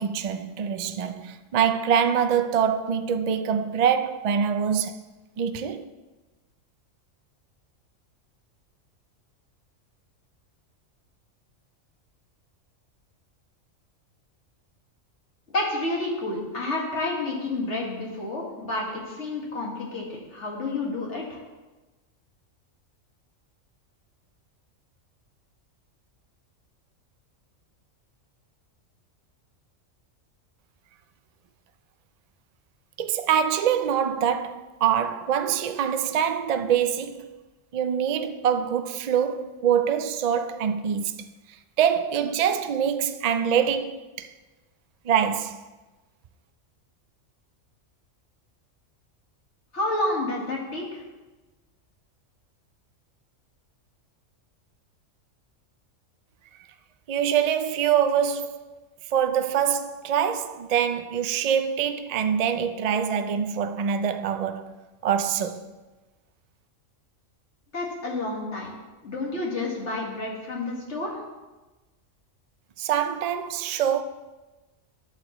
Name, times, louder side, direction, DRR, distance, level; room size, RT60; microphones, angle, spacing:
voice 1, 0.0-5.0 5.4-5.8 33.0-37.3 37.7-41.1 41.8-44.3 45.0-45.6 57.1-58.8 59.1-64.7 65.0-65.6 72.8-74.0, right 8 dB, 85° right, 0.3 m, -24 dB
voice 2, 15.5-21.4 49.7-51.0 67.7-68.7 69.0-71.2, left 2 dB, 60° left, 2.1 m, -30 dB
11.5 x 7.5 x 3.0 m
omnidirectional pair, 1.3 m